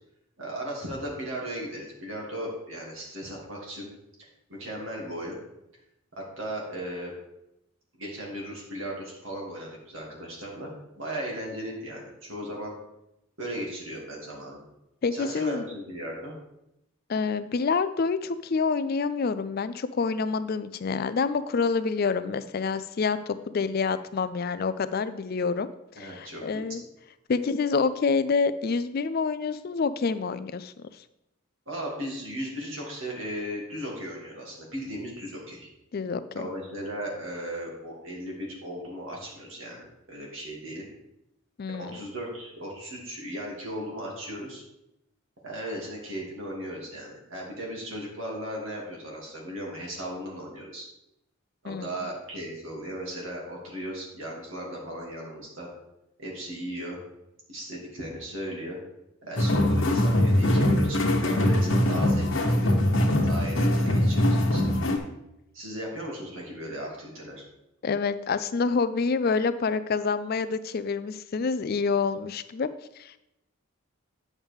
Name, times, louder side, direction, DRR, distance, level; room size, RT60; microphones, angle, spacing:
voice 1, 0.4-3.9 4.2-5.4 6.2-7.1 8.0-12.8 13.4-14.6 15.1-16.3 26.0-26.8 31.7-35.7 36.3-40.9 41.7-44.6 45.4-50.9 51.6-55.7 56.2-57.0 57.5-58.8 59.2-62.8 63.2-64.6 65.5-67.4, equal, 65° right, -2 dB, 2.6 m, -37 dB
voice 2, 15.0-15.7 17.1-25.7 26.0-26.8 27.3-30.9 35.9-36.4 41.6-41.9 51.7-51.9 67.8-72.7 73.0-73.2, left 5 dB, 45° left, 13 dB, 0.4 m, -27 dB
sound 1, 59.4-65.0, left 1 dB, 60° left, 1.3 m, -22 dB
9.4 x 7.2 x 3.6 m, 0.87 s
head